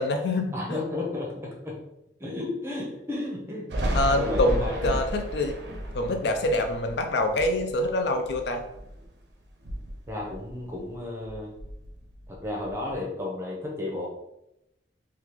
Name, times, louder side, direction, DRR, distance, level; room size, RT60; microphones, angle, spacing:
voice 1, 0.0-0.5 3.9-5.6 5.9-8.6, left 1 dB, 65° left, 5 dB, 0.4 m, -25 dB
voice 2, 0.5-1.8 2.2-4.9 10.1-11.5 12.3-14.1, left 2 dB, 15° right, -2 dB, 0.7 m, -33 dB
Thunder, 3.7-9.1 9.5-11.0 11.2-12.9, right 1 dB, 70° right, 0.5 m, -33 dB
3.5 x 2.4 x 2.9 m, 0.85 s
head